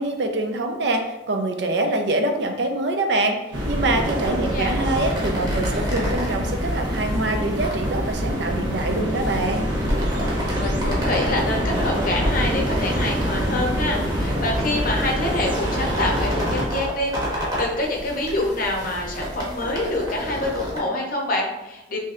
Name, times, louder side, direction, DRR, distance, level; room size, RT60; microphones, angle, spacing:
voice 1, 0.0-3.4 3.6-9.7, right 2 dB, 60° right, 5 dB, 0.5 m, -25 dB
sound 1, 3.5-20.8, equal, 20° right, 0.9 m, -31 dB
sound 2, 3.5-16.7, equal, 85° right, 0.9 m, -25 dB
voice 2, 4.2-4.7 10.6-22.0, left 2 dB, 50° left, 0 dB, 0.7 m, -26 dB
3.1 x 2.7 x 3.6 m, 0.96 s
head